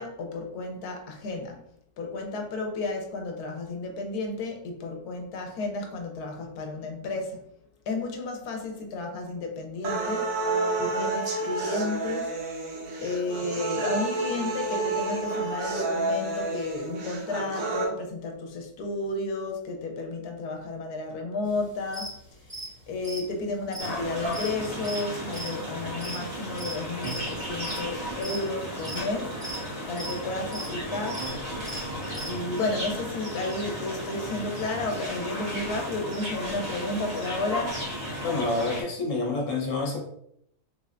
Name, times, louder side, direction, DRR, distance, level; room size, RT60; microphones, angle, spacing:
voice 1, 0.0-1.6 2.0-7.4 7.9-12.4 13.0-22.2 22.9-31.3 32.2-37.8, left 3 dB, 80° left, 2 dB, 1.2 m, -32 dB
sound 1, 9.8-17.8, right 3 dB, 60° right, 0.9 m, -30 dB
sound 2, 21.5-21.6 21.9-22.1 22.4-26.8 27.0-27.3 27.6-27.9 28.2-28.5 28.8-29.7 30.0-30.1 30.4-30.7 31.1-31.3 31.6-32.3, right 1 dB, 10° right, 1.0 m, -38 dB
sound 3, 23.8-38.8, equal, 45° right, 1.2 m, -34 dB
voice 2, 38.2-40.0, left 3 dB, 55° left, -2 dB, 1.3 m, -28 dB
3.5 x 3.2 x 2.5 m, 0.71 s
omnidirectional pair, 1.6 m